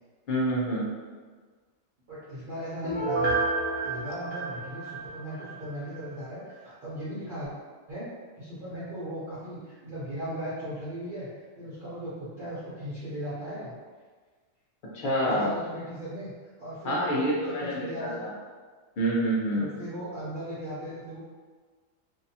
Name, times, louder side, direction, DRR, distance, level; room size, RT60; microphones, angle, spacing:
voice 1, 0.3-0.9 14.9-15.5 16.8-18.3 19.0-19.7, right 1 dB, 60° left, -5 dB, 0.5 m, -27 dB
voice 2, 2.1-3.4 3.8-7.5 7.9-8.1 8.4-11.3 11.6-13.7 15.2-16.3 16.6-18.2 19.5-21.2, equal, 45° right, -12 dB, 0.8 m, -37 dB
Piano, 2.8-5.5 5.9-6.0, right 2 dB, 75° right, 1.2 m, -29 dB
2.7 x 2.2 x 2.7 m, 1.5 s
omnidirectional pair, 1.4 m